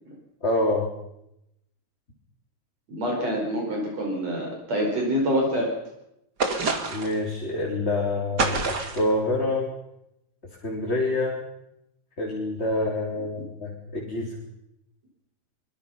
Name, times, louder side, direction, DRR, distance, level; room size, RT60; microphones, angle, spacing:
voice 1, 0.4-0.9 6.9-9.7 10.6-11.4 12.2-14.4, left 2 dB, 20° left, -2 dB, 3.9 m, -26 dB
voice 2, 2.9-5.7, equal, 60° right, 0 dB, 6.0 m, -26 dB
sound 1, 6.4-7.2 8.4-9.1, right 3 dB, 35° right, 2.7 m, -26 dB
24.5 x 23.5 x 5.8 m, 0.83 s
omnidirectional pair, 3.3 m